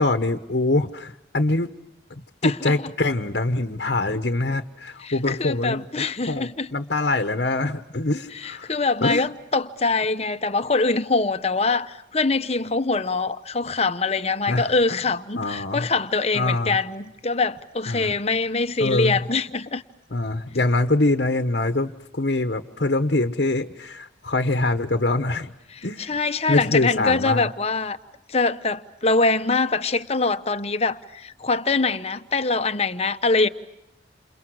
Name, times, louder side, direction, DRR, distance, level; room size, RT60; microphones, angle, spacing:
voice 1, 0.0-1.7 2.4-5.9 6.3-8.7 9.0-9.3 14.5-14.7 15.3-15.9 16.3-16.8 17.9-18.2 18.8-19.2 20.1-25.5 25.8-26.1 26.5-27.5, left 2 dB, 60° left, 1.2 m, -24 dB
voice 2, 2.4-2.9 5.0-6.7 8.3-19.8 25.7-28.0 28.3-33.5, left 3 dB, 35° left, 1.1 m, -24 dB
29.5 x 28.5 x 6.4 m
head